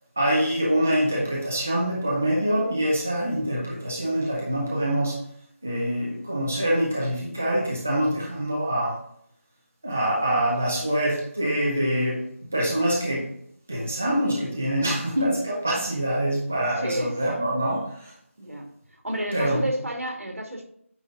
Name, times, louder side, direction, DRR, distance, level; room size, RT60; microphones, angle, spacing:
voice 1, 0.2-5.2 5.6-9.0 9.8-12.2 12.5-13.3 13.7-18.1 19.3-19.7, right 1 dB, 10° right, -3 dB, 0.3 m, -25 dB
voice 2, 16.8-17.1 18.4-18.7 19.0-20.6, equal, 85° right, 1 dB, 2.1 m, -30 dB
8.7 x 3.6 x 3.8 m, 0.68 s
figure-of-eight pair, 175°, 8 cm